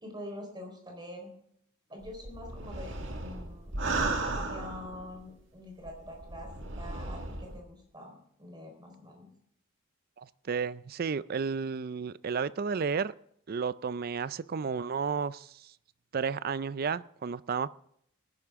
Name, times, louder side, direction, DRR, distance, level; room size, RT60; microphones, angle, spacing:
voice 1, 0.0-1.3 1.9-3.8 4.2-9.3, left 1 dB, 20° right, 4.3 m, -45 dB
sound 1, 2.0-5.2 5.8-7.6, right 2 dB, 60° right, 2.0 m, -35 dB
voice 2, 10.2-13.1 13.5-15.7 16.1-17.7, right 5 dB, 45° right, 0.4 m, -32 dB
19.0 x 11.0 x 3.6 m
head